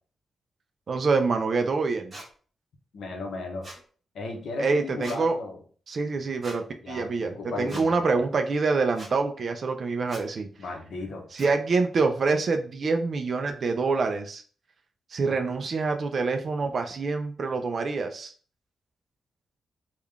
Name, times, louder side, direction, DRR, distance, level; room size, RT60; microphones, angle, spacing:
voice 1, 0.9-2.2 4.6-5.4 5.9-10.5 11.3-14.4 15.1-18.3, right 4 dB, 40° right, 6 dB, 0.4 m, -26 dB
sound 1, 2.1-2.3 3.6-3.8 5.0-5.2 6.4-6.6 7.7-7.9 8.9-9.1 10.1-10.2 11.4-11.5, right 1 dB, 20° right, 1.0 m, -42 dB
voice 2, 2.9-3.7 4.1-5.6 6.8-8.3 10.6-11.3, left 3 dB, 70° left, 2 dB, 0.9 m, -35 dB
3.6 x 2.3 x 3.3 m, 0.42 s
wide cardioid pair, 175°, 0 cm